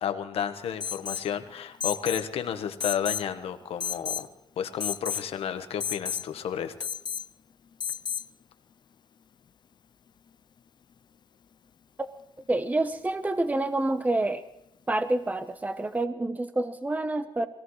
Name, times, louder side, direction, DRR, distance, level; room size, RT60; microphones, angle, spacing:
voice 1, 0.0-4.3 4.6-6.7, left 8 dB, 85° left, 8 dB, 1.3 m, -32 dB
Alarm, 0.8-1.3 1.8-2.3 2.8-3.3 3.8-4.3 4.8-5.3 5.8-6.3 6.8-7.3 7.8-8.3, left 8 dB, 50° left, 0.5 m, -32 dB
voice 2, 12.5-14.4 14.9-17.5, right 2 dB, 15° right, 9 dB, 1.0 m, -27 dB
22.5 x 18.0 x 3.2 m, 0.79 s
cardioid pair, 95°, 10 cm